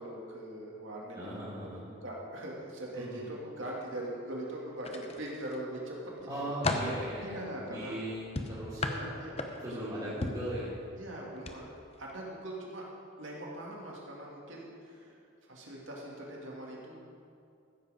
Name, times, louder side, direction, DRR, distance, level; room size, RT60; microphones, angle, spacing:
voice 1, 0.0-6.0 6.2-6.5 7.2-8.0 8.7-10.2 11.0-12.8 13.2-17.0, right 1 dB, 70° right, -3 dB, 2.6 m, -42 dB
voice 2, 1.1-1.8 2.9-3.2 6.3-8.8 9.6-10.8, right 1 dB, 20° right, -10 dB, 2.5 m, -38 dB
sound 1, 4.8-5.6 6.1-7.0 8.3-9.8 10.2-10.5 11.4-11.6 11.9-12.1, left 2 dB, 30° left, 0.8 m, -34 dB
14.5 x 8.0 x 5.3 m, 2.5 s
head